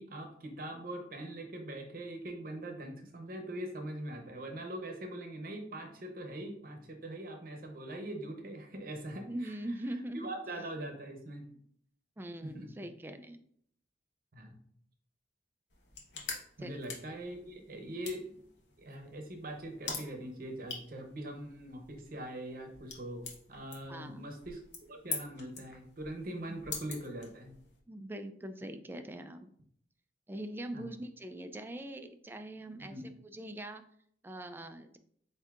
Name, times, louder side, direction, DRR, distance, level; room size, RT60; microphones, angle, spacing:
voice 1, 0.0-9.5 10.1-11.5 12.4-12.7 14.3-14.6 16.6-18.2 18.8-24.6 24.9-27.5 30.7-30.9 32.8-33.1, right 1 dB, 55° right, 4 dB, 0.8 m, -42 dB
voice 2, 9.3-10.3 12.2-13.4 16.6-16.8 23.9-24.2 26.5-26.6 27.9-29.5 30.3-33.8 34.2-35.0, right 1 dB, 10° right, 8 dB, 0.3 m, -42 dB
sound 1, 15.7-27.8, left 4 dB, 80° left, 1.1 m, -46 dB
7.8 x 2.7 x 2.4 m, 0.65 s
head